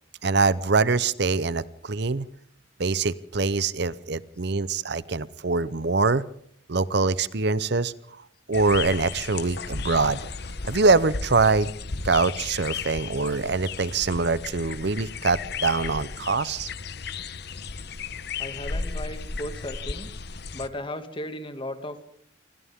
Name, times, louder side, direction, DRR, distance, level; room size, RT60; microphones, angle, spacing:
voice 1, 0.2-2.3 2.8-6.3 6.7-7.9 8.5-10.2 10.7-11.7 12.0-16.7, right 4 dB, 60° right, 17 dB, 0.8 m, -24 dB
sound 1, 8.5-20.7, left 5 dB, 55° left, 1.0 m, -34 dB
voice 2, 18.4-20.1 20.5-22.0, left 1 dB, 25° left, 8 dB, 2.2 m, -35 dB
29.0 x 24.5 x 3.7 m, 0.63 s
head